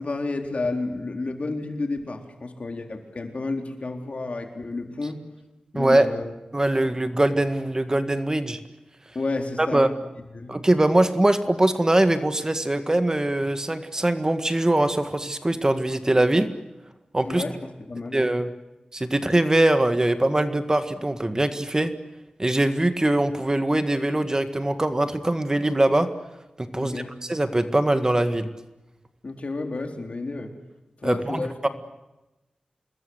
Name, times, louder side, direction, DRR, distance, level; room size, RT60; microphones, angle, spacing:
voice 1, 0.0-5.2 5.7-6.3 9.1-9.9 10.3-10.6 17.2-18.2 26.7-27.1 29.2-30.5 31.0-31.7, left 3 dB, 55° left, 4 dB, 3.8 m, -31 dB
voice 2, 5.7-6.1 6.5-8.6 9.6-9.9 10.5-16.5 17.1-17.4 18.1-18.5 18.9-21.9 22.4-26.1 26.6-27.0 27.3-28.5 31.0-31.7, right 1 dB, 25° right, 9 dB, 1.8 m, -22 dB
27.0 x 21.0 x 8.0 m, 1.0 s
wide cardioid pair, 65°, 3 cm